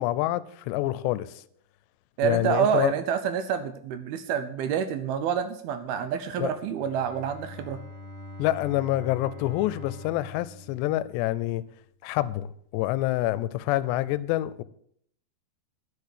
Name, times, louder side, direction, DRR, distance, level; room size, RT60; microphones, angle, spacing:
voice 1, 0.0-1.3 2.2-2.9 6.4-6.5 8.4-11.6 12.0-14.6, left 15 dB, 90° left, 2.8 m, -27 dB
voice 2, 2.2-7.8, right 8 dB, 75° right, 2.4 m, -27 dB
Bowed string instrument, 6.6-11.5, left 2 dB, 20° left, 2.2 m, -43 dB
10.0 x 6.7 x 8.2 m
omnidirectional pair, 4.9 m